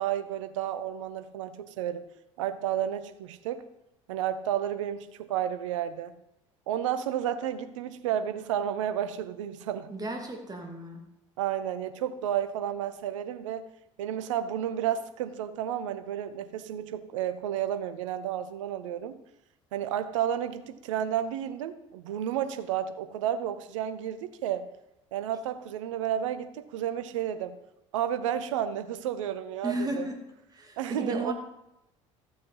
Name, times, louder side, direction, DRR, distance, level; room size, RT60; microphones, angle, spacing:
voice 1, 0.0-2.0 2.4-3.7 4.1-6.1 6.7-9.9 11.4-13.7 14.0-19.2 19.7-24.7 25.1-27.6 27.9-30.1 30.8-31.3, right 10 dB, 70° right, 11 dB, 0.8 m, -31 dB
voice 2, 9.9-11.0 29.6-30.2 30.5-31.3, right 1 dB, 20° right, 3 dB, 2.6 m, -34 dB
14.0 x 6.7 x 5.6 m, 0.88 s
figure-of-eight pair, 60°, 17 cm